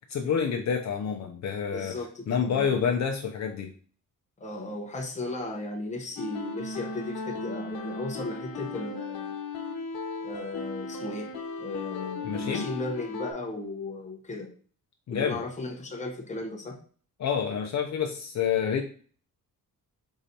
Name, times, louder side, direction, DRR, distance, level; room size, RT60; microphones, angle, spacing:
voice 1, 0.1-2.0 2.3-3.7 12.2-12.7 15.1-15.4 17.2-18.8, left 7 dB, 50° left, 2 dB, 0.6 m, -28 dB
voice 2, 1.7-2.9 4.4-9.3 10.2-11.3 11.6-14.5 15.1-16.8, left 2 dB, 20° left, 0 dB, 0.8 m, -36 dB
sound 1, 6.2-13.3, left 4 dB, 85° left, 0.9 m, -36 dB
4.9 x 3.9 x 2.8 m, 0.43 s
wide cardioid pair, 170°, 35 cm